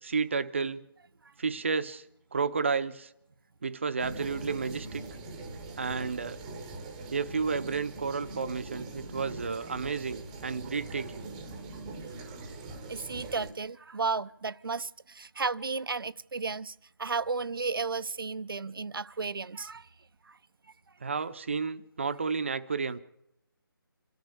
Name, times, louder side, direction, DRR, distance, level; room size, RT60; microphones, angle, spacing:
voice 1, 0.0-0.8 1.4-2.0 2.3-3.1 3.6-5.0 5.8-6.4 7.1-11.3 21.0-23.0, right 5 dB, 30° right, 0.8 m, -31 dB
sound 1, 4.0-13.5, right 2 dB, 5° right, 1.0 m, -42 dB
voice 2, 12.9-19.9 20.3-20.4, right 4 dB, 70° right, 0.7 m, -33 dB
27.5 x 13.5 x 7.0 m
figure-of-eight pair, 175°, 12 cm